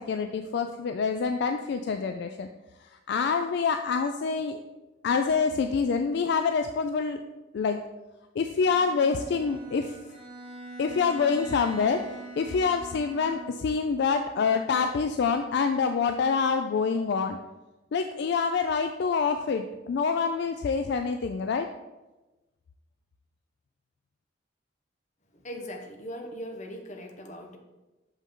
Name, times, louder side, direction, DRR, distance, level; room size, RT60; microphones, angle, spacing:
voice 1, 0.0-2.5 2.8-4.6 5.0-7.2 7.5-7.8 8.4-10.0 10.8-12.0 12.4-17.4 17.9-21.7, left 5 dB, 65° left, 7 dB, 0.3 m, -26 dB
Bowed string instrument, 8.6-13.8, right 2 dB, 35° right, 1.9 m, -43 dB
voice 2, 25.4-27.6, equal, 40° left, 3 dB, 0.9 m, -39 dB
6.4 x 5.3 x 3.7 m, 1.1 s
head